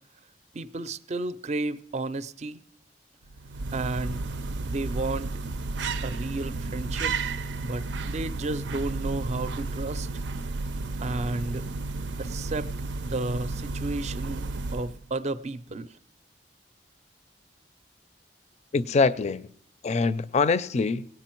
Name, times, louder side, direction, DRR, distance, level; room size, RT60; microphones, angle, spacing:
voice 1, 0.5-2.6 3.7-4.3 4.6-5.4 6.0-7.1 7.6-10.1 11.0-11.7 12.2-12.7 13.0-15.9, right 2 dB, 40° right, 0.5 m, -32 dB
sound 1, 3.3-15.1, right 3 dB, 90° right, 0.5 m, -32 dB
voice 2, 18.7-19.5 19.8-21.1, left 4 dB, 40° left, 0.4 m, -24 dB
18.0 x 8.8 x 4.5 m
head